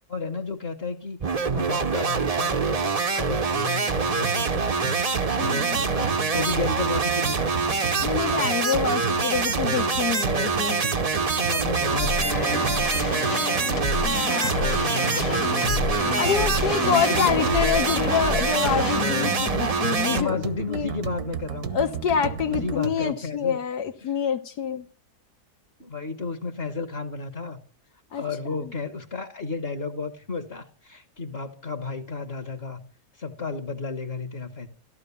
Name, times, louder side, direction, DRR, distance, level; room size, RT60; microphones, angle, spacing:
voice 1, 0.1-4.5 5.4-7.6 11.3-14.1 14.6-16.2 16.8-17.9 20.0-21.7 22.5-23.6 24.0-24.1 25.8-27.6 28.2-32.8 33.2-34.7, left 4 dB, 40° left, 1.4 m, -33 dB
sound 1, 1.2-20.2, right 4 dB, 35° right, 0.6 m, -25 dB
sound 2, 3.9-23.1, right 6 dB, 70° right, 1.5 m, -34 dB
voice 2, 5.4-5.8 8.0-10.8 14.0-14.7 16.1-20.4 20.7-20.9 21.7-24.9 28.1-28.2, left 7 dB, 80° left, 1.6 m, -26 dB
sound 3, 11.9-21.1, left 5 dB, 60° left, 1.3 m, -31 dB
14.5 x 13.0 x 7.0 m
omnidirectional pair, 1.7 m